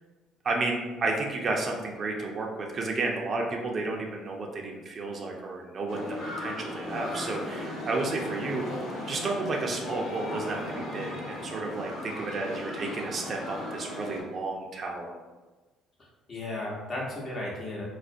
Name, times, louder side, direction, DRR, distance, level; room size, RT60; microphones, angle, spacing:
voice 1, 0.4-8.6 9.1-15.1, right 3 dB, 45° right, 0 dB, 0.4 m, -32 dB
sound 1, 5.9-14.2, left 1 dB, 80° left, 0.8 m, -36 dB
voice 2, 16.0-17.8, left 2 dB, 45° left, -3 dB, 0.8 m, -35 dB
2.4 x 2.0 x 2.5 m, 1.2 s
hypercardioid pair, 65°, 0 cm